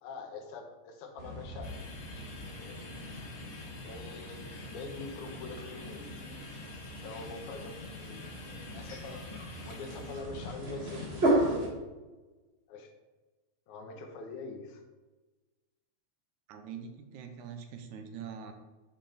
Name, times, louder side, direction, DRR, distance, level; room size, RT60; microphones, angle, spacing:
voice 1, 0.0-1.8 2.6-3.0 3.8-6.1 6.9-8.3 8.7-9.2 9.6-11.9 12.7-12.9 13.7-14.8, left 3 dB, 85° left, 3 dB, 2.4 m, -44 dB
sound 1, 1.2-11.7, right 1 dB, 35° right, 1.0 m, -36 dB
sound 2, 1.6-10.2, left 3 dB, 55° left, 1.1 m, -50 dB
voice 2, 16.5-18.5, right 7 dB, 85° right, 6 dB, 2.2 m, -43 dB
7.4 x 5.3 x 4.3 m, 1.2 s
omnidirectional pair, 3.4 m